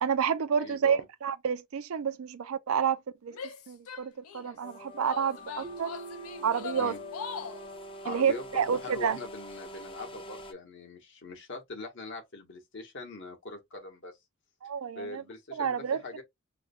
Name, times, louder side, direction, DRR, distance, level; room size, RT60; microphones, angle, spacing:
voice 1, 0.0-3.4 3.7-5.9 6.4-6.9 8.0-9.2 14.6-15.2 15.5-16.2, right 7 dB, 75° right, 0.4 m, -29 dB
voice 2, 0.6-1.0 6.7-7.0 8.0-14.2 14.9-16.2, left 2 dB, 60° left, 1.1 m, -42 dB
Female speech woman speaking / Yell, 3.3-4.5 5.0-7.7, left 6 dB, 85° left, 0.6 m, -41 dB
sound 1, 4.6-10.5, left 1 dB, 25° left, 0.5 m, -45 dB
Keyboard (musical), 5.6-8.4, right 4 dB, 25° right, 0.5 m, -46 dB
4.7 x 2.2 x 2.4 m
head